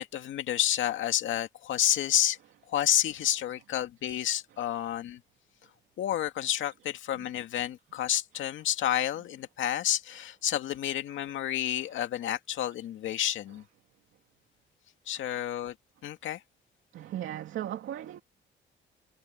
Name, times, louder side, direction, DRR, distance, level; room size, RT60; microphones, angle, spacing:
voice 1, 0.0-2.4 2.7-5.2 6.0-13.6 15.1-15.7 16.0-16.4, left 11 dB, 75° left, 2.2 m, -30 dB
voice 2, 15.1-15.5 16.9-18.2, right 12 dB, 80° right, 2.7 m, -39 dB
cardioid pair, 90°, 20 cm